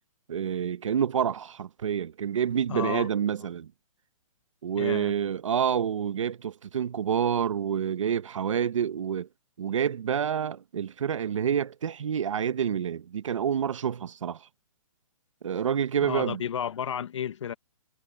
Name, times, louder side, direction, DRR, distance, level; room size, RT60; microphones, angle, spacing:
voice 1, 0.3-3.7 4.6-9.3 9.6-14.5 15.4-16.4, right 8 dB, 60° right, 1.4 m, -28 dB
voice 2, 2.7-3.1 4.8-5.1 16.0-17.5, left 8 dB, 55° left, 1.3 m, -32 dB
hypercardioid pair, 170°, 18 cm